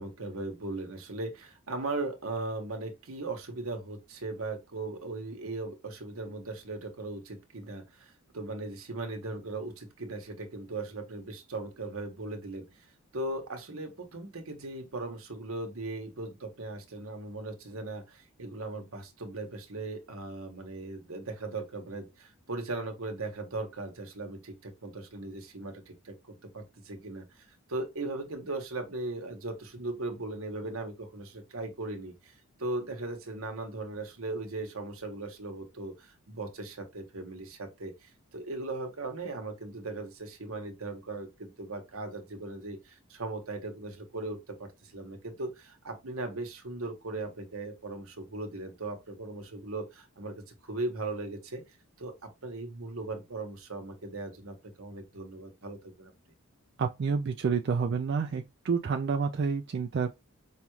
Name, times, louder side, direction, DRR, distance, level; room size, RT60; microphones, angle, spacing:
voice 1, 0.0-51.6 52.0-56.1, right 2 dB, 70° right, 1.1 m, -38 dB
voice 2, 56.8-60.2, right 5 dB, 50° right, 0.3 m, -29 dB
5.4 x 2.3 x 3.1 m
head